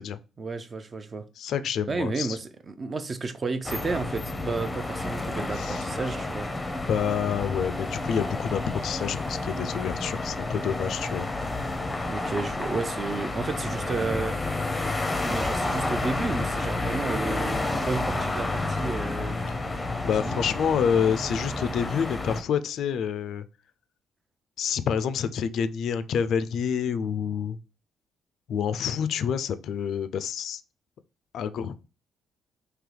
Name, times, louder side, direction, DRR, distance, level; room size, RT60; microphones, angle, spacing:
voice 1, 0.4-1.3 1.9-6.5 12.1-14.6 15.2-19.5 20.2-20.4, right 3 dB, 35° right, 0.5 m, -32 dB
voice 2, 1.4-2.4 5.6-5.8 6.8-11.3 20.0-23.4 24.6-27.6 28.5-30.6 31.3-31.8, left 7 dB, 70° left, 0.3 m, -28 dB
sound 1, 3.6-22.4, left 2 dB, 15° left, 0.6 m, -30 dB
3.8 x 2.8 x 3.2 m
cardioid pair, 90°, 0 cm